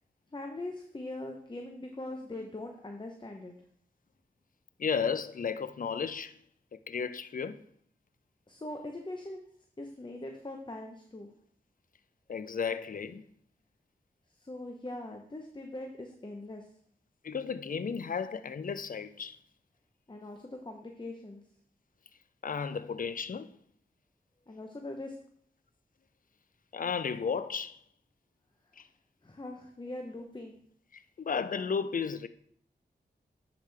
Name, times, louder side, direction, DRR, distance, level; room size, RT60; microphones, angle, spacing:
voice 1, 0.3-3.5 8.5-9.4 9.8-11.3 14.4-16.7 20.1-21.4 24.5-25.1 29.2-30.5, left 2 dB, 25° left, 0.8 m, -41 dB
voice 2, 4.8-6.4 6.7-7.6 12.3-13.2 17.2-19.4 22.4-23.5 26.7-27.8 28.8-28.9 30.9-32.3, left 6 dB, 50° left, 0.5 m, -34 dB
9.8 x 5.0 x 3.4 m
cardioid pair, 45°, 17 cm